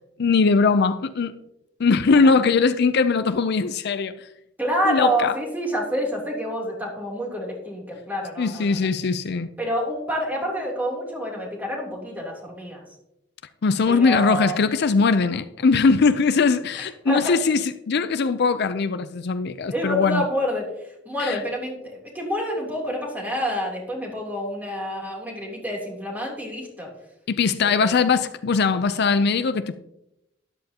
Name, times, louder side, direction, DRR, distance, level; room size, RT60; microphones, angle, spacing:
voice 1, 0.2-1.4 1.8-4.3 4.8-5.4 8.4-9.5 13.6-20.2 21.2-21.4 27.3-29.8, left 4 dB, 55° left, 0.5 m, -20 dB
voice 2, 4.6-8.8 9.6-12.8 13.9-14.6 16.8-17.3 19.7-20.6 21.0-26.9 27.6-28.0, equal, 10° right, 3.1 m, -28 dB
13.0 x 11.0 x 2.9 m
head